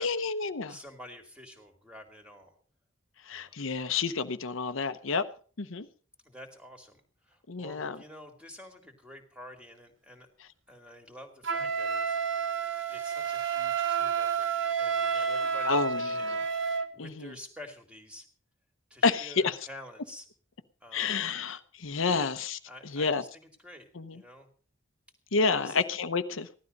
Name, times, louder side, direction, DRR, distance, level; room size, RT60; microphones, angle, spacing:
voice 1, 0.0-0.8 3.2-5.3 5.6-5.9 7.5-8.0 15.1-15.3 15.7-16.4 17.0-17.3 19.0-19.6 20.9-22.6 22.9-23.2 23.9-24.2 25.3-26.5, left 4 dB, 75° left, 10 dB, 0.9 m, -29 dB
voice 2, 0.7-2.6 3.3-3.6 6.2-10.3 10.7-12.2 12.9-14.5 14.8-16.4 16.9-18.3 18.9-20.3 20.8-21.3 22.7-24.5 25.5-25.8, left 1 dB, 5° right, 4 dB, 2.3 m, -49 dB
Wind instrument woodwind instrument, 11.4-16.9, right 6 dB, 70° right, 1.1 m, -30 dB
16.0 x 12.5 x 5.3 m, 0.41 s
head